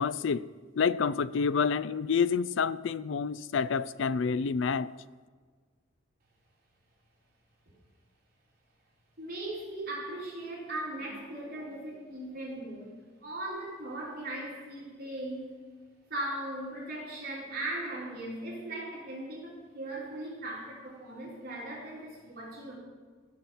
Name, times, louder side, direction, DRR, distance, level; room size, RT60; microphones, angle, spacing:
voice 1, 0.0-4.9, left 5 dB, 70° left, 0.4 m, -28 dB
voice 2, 9.2-12.9 13.2-15.5 16.1-22.8, right 1 dB, 50° right, 3.8 m, -38 dB
15.5 x 5.9 x 7.1 m
head